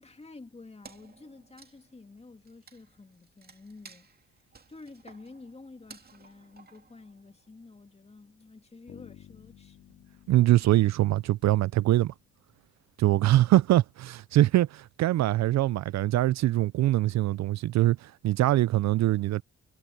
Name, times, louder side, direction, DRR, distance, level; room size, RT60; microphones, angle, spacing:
voice 1, 0.0-4.1 4.7-9.8, left 3 dB, 20° left, 2.3 m, -50 dB
Wood, 0.8-7.5, right 4 dB, 30° right, 2.6 m, -55 dB
Bass guitar, 8.9-12.7, left 10 dB, 60° left, 2.8 m, -54 dB
voice 2, 10.3-12.1 13.0-19.4, right 15 dB, 65° right, 0.5 m, -23 dB
cardioid pair, 90°, 30 cm